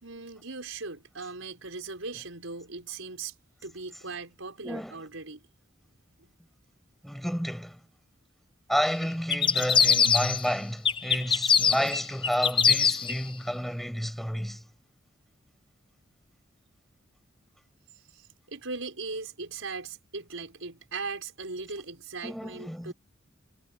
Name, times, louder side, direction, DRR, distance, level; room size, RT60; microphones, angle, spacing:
voice 1, 0.0-3.3 3.6-5.4 6.2-6.3 18.1-22.9, right 4 dB, 85° right, 5.1 m, -39 dB
voice 2, 4.6-5.0 7.0-7.8 8.7-14.6 22.2-22.9, equal, ahead, 6.3 m, -31 dB
sound 1, 9.3-10.5 10.9-13.2, left 6 dB, 25° left, 0.9 m, -23 dB
head